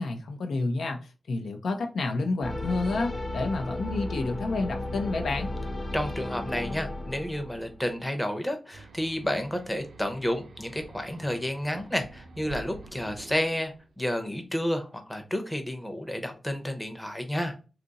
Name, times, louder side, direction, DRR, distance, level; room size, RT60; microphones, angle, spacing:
voice 1, 0.0-5.5, left 3 dB, 85° left, 0.6 m, -30 dB
sound 1, 2.4-7.9, left 1 dB, 35° left, 0.8 m, -34 dB
voice 2, 5.9-17.5, left 1 dB, 5° left, 0.7 m, -31 dB
sound 2, 8.7-14.1, right 3 dB, 90° right, 0.6 m, -48 dB
2.8 x 2.5 x 4.0 m
wide cardioid pair, 115°, 0 cm